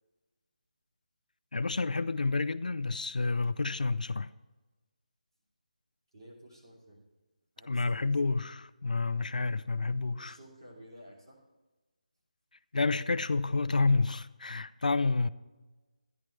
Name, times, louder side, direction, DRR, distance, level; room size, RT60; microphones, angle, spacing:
voice 1, 1.5-4.3 7.7-10.4 12.7-15.3, left 3 dB, 75° left, 0.4 m, -29 dB
voice 2, 6.1-7.0 7.6-8.5 10.1-11.4, equal, 30° right, 2.9 m, -53 dB
13.5 x 10.5 x 3.2 m
figure-of-eight pair, 180°, 4 cm